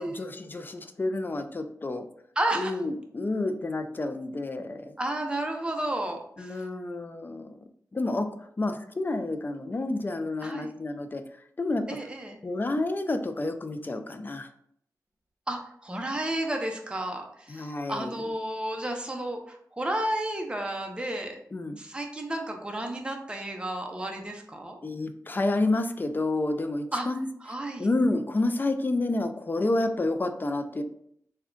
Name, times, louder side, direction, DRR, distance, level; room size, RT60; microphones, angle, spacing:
voice 1, 0.0-2.0 2.5-4.9 6.4-7.5 7.9-8.3 8.6-11.2 11.6-11.8 12.4-14.5 17.5-18.2 21.5-21.8 24.8-27.3 27.8-30.8, left 2 dB, 30° left, 8 dB, 0.4 m, -29 dB
voice 2, 2.4-2.8 5.0-6.6 10.4-10.7 11.9-12.4 15.5-21.4 21.8-24.8 26.9-27.1 27.4-27.9, right 1 dB, 15° right, 3 dB, 0.6 m, -32 dB
3.5 x 2.2 x 3.7 m, 0.67 s
cardioid pair, 65°, 6 cm